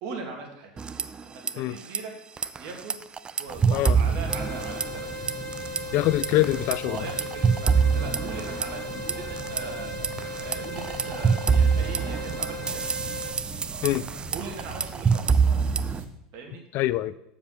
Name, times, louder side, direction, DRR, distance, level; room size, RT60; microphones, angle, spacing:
voice 1, 0.0-0.7 1.5-2.1 2.6-3.0 3.4-5.3 6.8-12.9 14.3-15.4 16.3-16.6, right 4 dB, 60° right, 2 dB, 2.1 m, -40 dB
sound 1, 0.8-1.5 1.8-2.0 2.4-5.0 5.3-5.8 6.2-9.6 10.0-16.0, right 5 dB, 20° right, 0.4 m, -25 dB
sound 2, 3.5-16.1, right 5 dB, 40° right, 1.2 m, -40 dB
sound 3, 4.3-13.3, left 1 dB, ahead, 2.2 m, -37 dB
voice 2, 5.9-7.1 13.8-14.1 16.7-17.1, left 16 dB, 55° left, 16 dB, 0.4 m, -24 dB
7.1 x 5.1 x 6.3 m, 0.80 s
hypercardioid pair, 85°, 4 cm